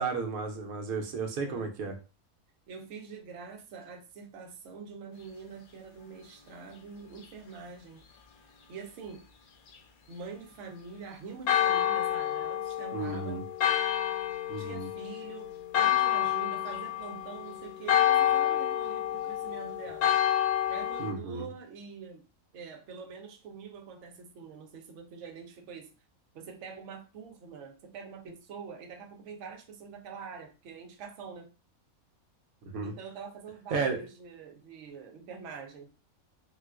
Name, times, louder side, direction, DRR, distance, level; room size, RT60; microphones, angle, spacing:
voice 1, 0.0-1.9 12.9-13.4 14.5-14.9 21.0-21.5 32.7-32.9 33.7-34.0, right 4 dB, 90° right, 1.1 m, -33 dB
voice 2, 1.4-1.7 2.7-8.1 8.7-9.2 10.1-13.4 14.6-20.2 20.7-22.3 22.5-25.9 26.3-31.5 32.8-35.9, right 5 dB, 65° right, 0.9 m, -45 dB
Church bell, 11.5-21.1, left 11 dB, 80° left, 1.0 m, -28 dB
3.7 x 2.3 x 2.3 m
omnidirectional pair, 1.5 m